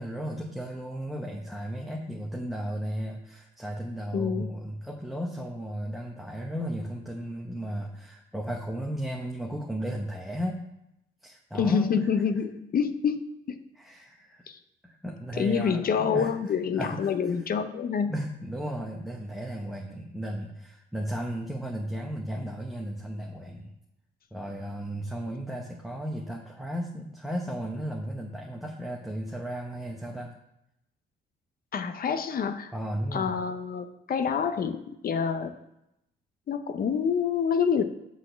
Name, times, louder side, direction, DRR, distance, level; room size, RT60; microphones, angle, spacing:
voice 1, 0.0-10.6 11.2-11.9 13.8-14.4 14.8-16.3 16.8-17.1 18.1-23.7 24.3-30.3 32.7-33.4, equal, ahead, -1 dB, 0.8 m, -35 dB
voice 2, 4.1-4.5 11.5-13.6 14.5-14.6 15.4-18.1 31.7-32.7 33.1-35.6 36.5-37.8, left 6 dB, 50° left, 10 dB, 0.6 m, -27 dB
6.0 x 4.1 x 5.7 m, 0.85 s
cardioid pair, 90°, 20 cm